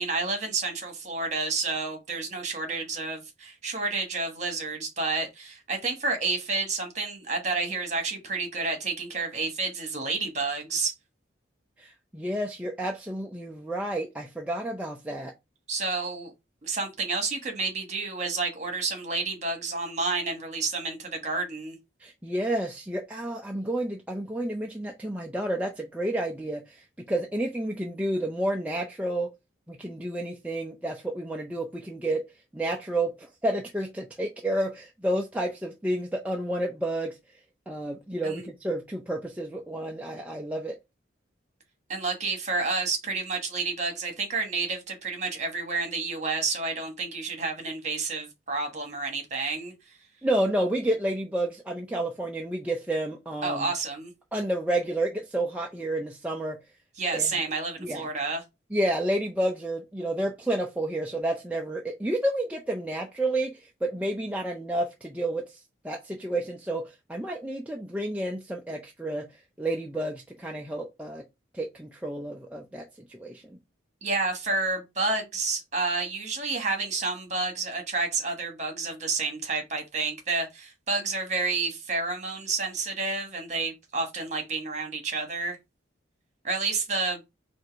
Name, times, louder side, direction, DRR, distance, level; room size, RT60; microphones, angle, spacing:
voice 1, 0.0-10.9 15.7-16.3 16.6-21.8 38.2-38.5 41.9-49.7 53.4-54.1 57.0-58.4 74.0-85.6 86.4-87.2, right 3 dB, 35° right, 1.3 m, -30 dB
voice 2, 11.8-15.3 22.0-29.3 29.7-32.2 32.5-37.1 37.7-40.8 50.2-53.7 54.3-56.6 57.1-57.3 57.8-58.1 58.7-65.6 65.8-69.2 69.6-71.2 71.5-73.6, right 1 dB, 5° right, 0.4 m, -30 dB
4.6 x 2.5 x 4.6 m
head